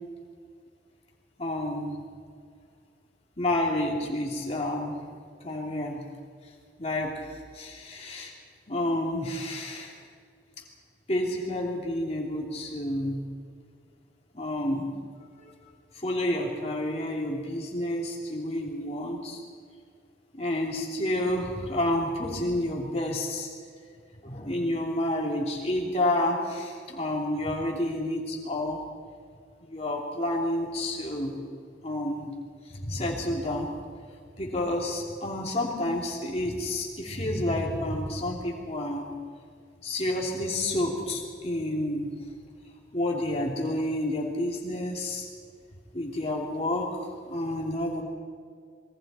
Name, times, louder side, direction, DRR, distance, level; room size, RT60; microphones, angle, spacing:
voice 1, 1.4-2.0 3.4-5.0 5.4-6.0 6.8-7.1 7.5-8.3 8.7-10.0 11.1-13.2 14.3-14.9 15.9-19.4 20.3-23.5 24.2-28.8 29.6-31.4 31.8-32.3 32.7-33.7 34.4-39.1 39.8-42.1 42.9-45.2 45.9-46.9 47.3-48.0, left 1 dB, 35° left, -1 dB, 3.1 m, -29 dB
26.5 x 22.5 x 4.4 m, 2.1 s
head